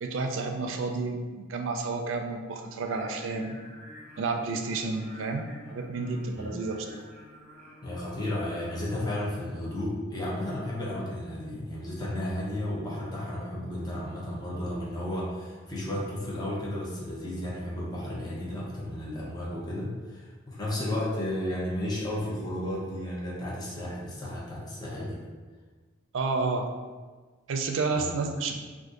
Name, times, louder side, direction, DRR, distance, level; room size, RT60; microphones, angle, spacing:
voice 1, 0.0-3.6 4.2-7.0 26.1-26.7 27.5-28.6, right 3 dB, 75° right, 4 dB, 0.4 m, -30 dB
Singing, 2.9-9.1, left 1 dB, 5° left, 1.3 m, -50 dB
voice 2, 7.8-25.2 27.9-28.1, left 1 dB, 20° left, -5 dB, 0.7 m, -33 dB
2.6 x 2.5 x 3.6 m, 1.4 s
head